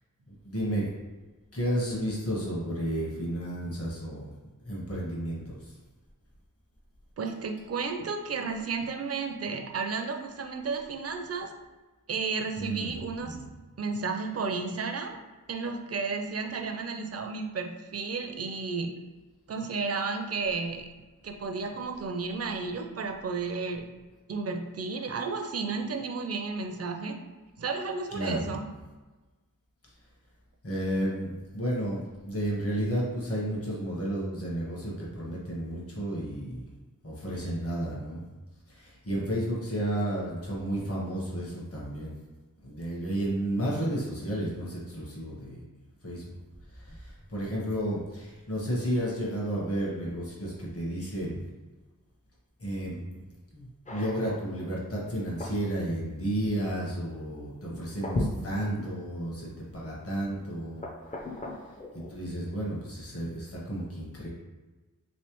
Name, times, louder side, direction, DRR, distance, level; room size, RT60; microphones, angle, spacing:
voice 1, 0.3-0.9 1.5-4.3 4.6-5.8 12.6-12.9 13.2-13.4 28.1-28.6 30.6-36.6 37.0-38.2 38.7-42.1 42.6-45.6 46.0-46.3 46.7-51.4 52.6-53.2 53.5-60.8 61.7-64.3, right 1 dB, 45° left, -5 dB, 1.1 m, -32 dB
voice 2, 7.2-11.5 12.1-13.4 13.8-15.2 15.5-18.9 19.5-20.9 21.2-23.8 24.3-27.1 27.6-28.7, right 4 dB, 45° right, 4 dB, 0.5 m, -32 dB
sound 1, 53.9-54.8 55.2-55.7 56.4-56.5 57.7-58.9 59.6-59.7 60.8-62.1, left 1 dB, 20° left, 0.5 m, -36 dB
3.2 x 3.1 x 3.0 m, 1.2 s
wide cardioid pair, 55°, 34 cm